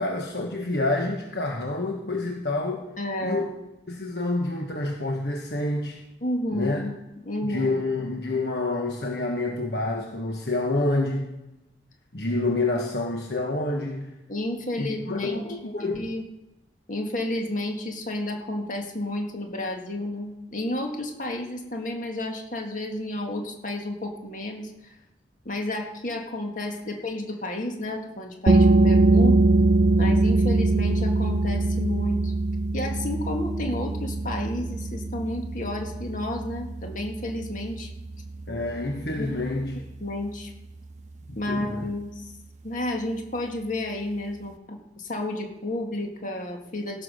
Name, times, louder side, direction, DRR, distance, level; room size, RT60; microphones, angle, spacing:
voice 1, 0.0-2.8 3.2-3.5 3.9-6.0 6.5-6.8 7.4-11.3 12.1-14.1 14.8-16.1 38.5-39.7 41.5-41.9, left 2 dB, 65° left, 1 dB, 1.3 m, -28 dB
voice 2, 3.0-3.6 6.2-7.8 14.3-15.4 15.8-16.3 16.9-24.9 25.5-29.4 30.0-32.3 32.7-37.9 39.2-39.4 39.7-40.5 41.4-42.3 42.6-47.0, left 1 dB, 45° left, 2 dB, 2.0 m, -31 dB
sound 1, 28.5-39.8, right 2 dB, 40° right, 0.5 m, -23 dB
16.0 x 6.0 x 6.4 m, 0.95 s
head